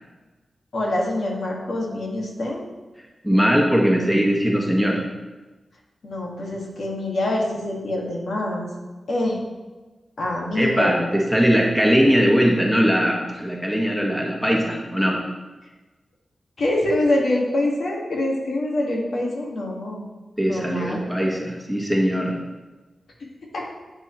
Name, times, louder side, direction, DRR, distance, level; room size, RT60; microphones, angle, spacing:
voice 1, 0.7-2.6 6.0-8.7 9.1-9.4 10.2-11.0 16.6-20.0 20.5-21.1 23.5-23.6, left 1 dB, 75° left, -2 dB, 2.1 m, -25 dB
voice 2, 3.2-5.0 10.6-15.2 20.4-22.4, equal, 5° left, -1 dB, 1.9 m, -20 dB
10.5 x 8.8 x 3.3 m, 1.2 s
wide cardioid pair, 80°, 0 cm